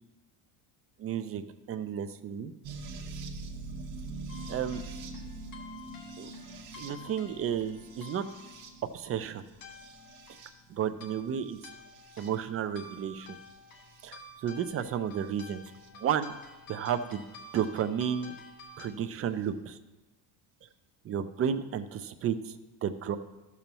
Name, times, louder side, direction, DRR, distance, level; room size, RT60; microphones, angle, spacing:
voice 1, 1.0-1.4 1.7-2.5 4.5-4.8 6.2-6.3 6.8-8.2 8.9-9.4 10.7-11.6 12.2-13.4 14.0-15.6 15.9-16.3 16.7-17.2 17.5-18.3 18.8-19.8 21.0-23.2, right 8 dB, 30° right, 10 dB, 0.5 m, -32 dB
sound 1, 2.6-10.8 11.5-12.3 13.4-14.1 15.8-15.9 17.6-17.7, right 3 dB, 55° right, 1.4 m, -44 dB
sound 2, 4.3-18.9, left 3 dB, 45° left, 1.3 m, -51 dB
14.0 x 6.9 x 3.0 m, 1.1 s
cardioid pair, 140°, 47 cm